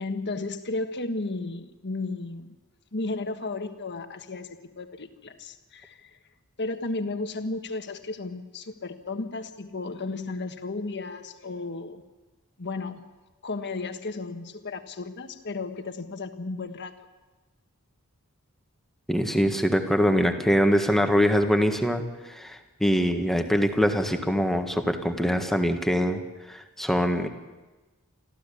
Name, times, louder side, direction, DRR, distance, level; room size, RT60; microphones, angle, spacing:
voice 1, 0.0-2.6 2.9-6.1 6.6-12.0 12.6-13.1 13.4-16.9, left 3 dB, 50° left, 7 dB, 1.5 m, -34 dB
voice 2, 19.1-26.2 26.5-27.3, equal, ahead, 5 dB, 1.6 m, -23 dB
25.0 x 15.0 x 8.5 m, 1.2 s
head